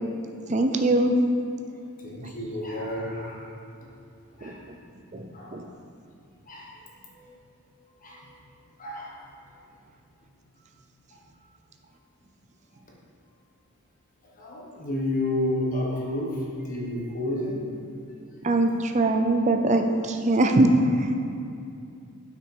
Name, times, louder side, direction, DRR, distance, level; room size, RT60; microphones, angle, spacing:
voice 1, 0.5-1.1 4.4-4.5 5.1-5.6 18.4-20.7 21.0-21.1, right 2 dB, 30° right, 5 dB, 0.5 m, -22 dB
voice 2, 2.0-3.5 4.4-4.6 5.3-5.6 6.5-6.8 7.1-7.3 8.0-8.3 8.8-9.2 14.4-17.7 18.3-18.4, left 1 dB, 35° left, -3 dB, 1.4 m, -31 dB
7.9 x 6.0 x 4.8 m, 2.5 s
head